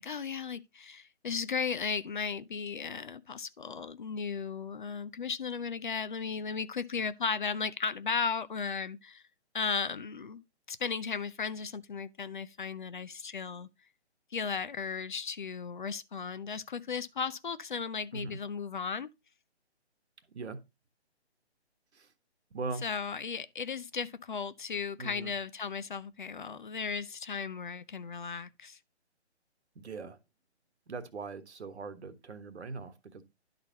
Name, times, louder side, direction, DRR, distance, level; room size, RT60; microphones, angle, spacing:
voice 1, 0.0-9.2 9.5-10.4 10.7-13.7 14.3-19.1 22.8-28.8, left 6 dB, 45° left, 0.5 m, -35 dB
voice 2, 25.0-25.3 29.7-30.2 30.9-33.2, right 4 dB, 70° right, 1.5 m, -40 dB
11.5 x 4.1 x 4.0 m
hypercardioid pair, 160°, 34 cm